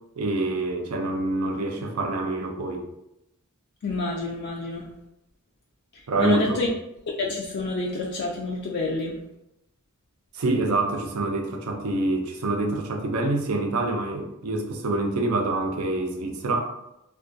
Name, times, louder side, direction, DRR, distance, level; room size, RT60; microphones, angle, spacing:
voice 1, 0.2-2.9 6.1-6.7 10.3-16.7, right 2 dB, 75° right, 3 dB, 0.5 m, -26 dB
voice 2, 3.8-4.9 5.9-6.7 7.2-9.2, left 3 dB, 50° left, -2 dB, 0.3 m, -28 dB
2.3 x 2.2 x 2.5 m, 0.86 s
head